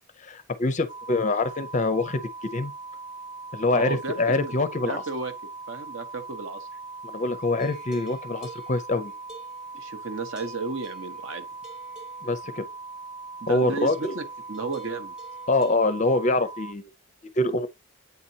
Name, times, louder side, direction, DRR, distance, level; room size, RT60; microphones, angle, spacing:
voice 1, 0.2-2.7 3.5-5.0 7.0-9.1 12.2-12.6 13.5-14.1 15.5-16.9 17.4-17.7, left 2 dB, 35° left, 0.5 m, -25 dB
sound 1, 0.9-16.7, right 3 dB, 25° right, 0.3 m, -40 dB
voice 2, 3.7-5.3 5.7-6.7 9.7-11.5 13.4-15.1, right 3 dB, 55° right, 0.9 m, -33 dB
sound 2, 7.6-10.0 10.4-12.6 13.9-15.8, right 3 dB, 5° right, 1.1 m, -50 dB
8.1 x 4.3 x 2.7 m
head